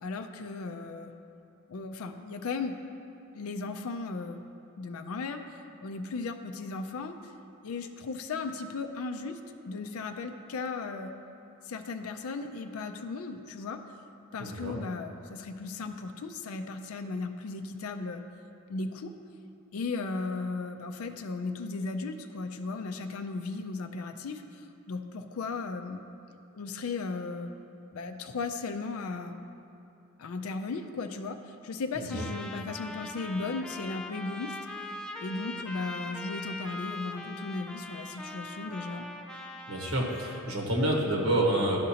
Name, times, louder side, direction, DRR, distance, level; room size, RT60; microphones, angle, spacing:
voice 1, 0.0-1.1 1.7-2.8 3.3-4.4 4.8-5.4 5.8-7.3 7.6-11.1 11.6-13.8 14.3-18.2 18.7-19.1 19.7-26.0 26.5-27.5 27.9-29.4 30.2-34.6 35.2-39.1, left 3 dB, 85° left, 6 dB, 0.4 m, -36 dB
voice 2, 14.4-14.8 32.1-32.2 39.7-41.8, right 1 dB, 90° right, -1 dB, 1.2 m, -28 dB
Trumpet, 32.1-40.7, left 2 dB, 5° left, 0.3 m, -41 dB
12.0 x 5.0 x 2.8 m, 2.7 s
head